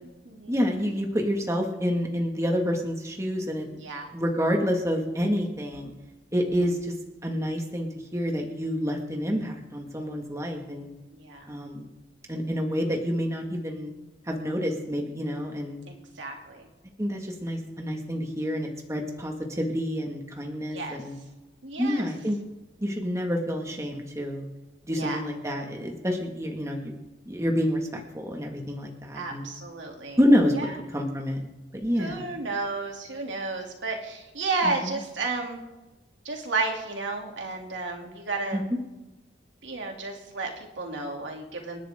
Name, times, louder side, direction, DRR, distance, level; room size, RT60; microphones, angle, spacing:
voice 1, 0.5-3.7 4.1-5.9 6.3-6.9 7.2-10.9 11.5-11.9 12.3-13.9 14.3-15.8 17.0-21.2 21.8-22.4 22.8-24.5 24.9-26.9 27.3-29.5 30.2-30.5 30.9-31.4 31.7-32.3 34.6-35.0 38.5-38.6, equal, 15° right, 1 dB, 2.0 m, -28 dB
voice 2, 3.7-4.1 11.1-11.5 15.9-16.7 20.7-21.0 21.6-22.1 24.9-25.2 29.1-30.2 30.5-30.7 32.0-35.6 36.2-38.7 39.6-41.8, right 3 dB, 80° right, 1 dB, 3.0 m, -32 dB
28.0 x 11.0 x 3.8 m, 1.1 s
head